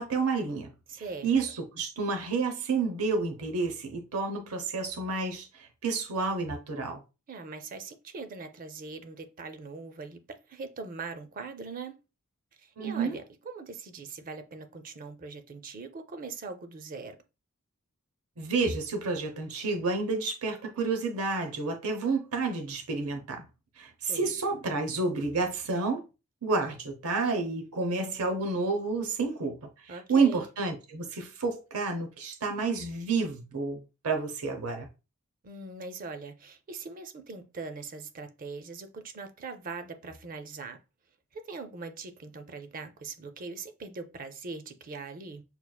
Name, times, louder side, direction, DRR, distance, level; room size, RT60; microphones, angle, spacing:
voice 1, 0.0-0.7 1.2-7.0 12.8-13.2 18.4-23.5 23.8-26.0 26.4-34.9, right 4 dB, 80° right, 0.7 m, -30 dB
voice 2, 0.9-1.3 7.3-12.0 12.6-17.2 24.1-24.4 29.9-30.4 35.4-40.8 41.3-45.4, right 4 dB, 40° right, 0.5 m, -41 dB
5.6 x 2.4 x 2.2 m
head